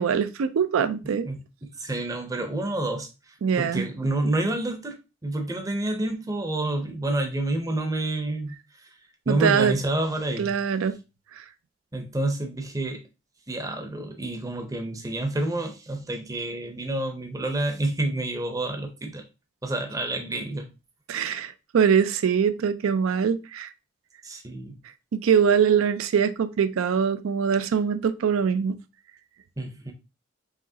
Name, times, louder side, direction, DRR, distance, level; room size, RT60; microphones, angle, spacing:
voice 1, 0.0-1.3 3.4-3.9 9.3-9.7 10.4-10.9 11.4-11.5 21.1-23.7 25.1-28.7, right 7 dB, 90° right, 0.4 m, -23 dB
voice 2, 1.6-8.5 8.8-8.9 9.3-10.5 11.9-13.0 13.5-19.2 19.6-20.7 24.2-24.8 29.6-29.9, right 2 dB, 15° right, 0.6 m, -29 dB
4.9 x 3.0 x 2.7 m
head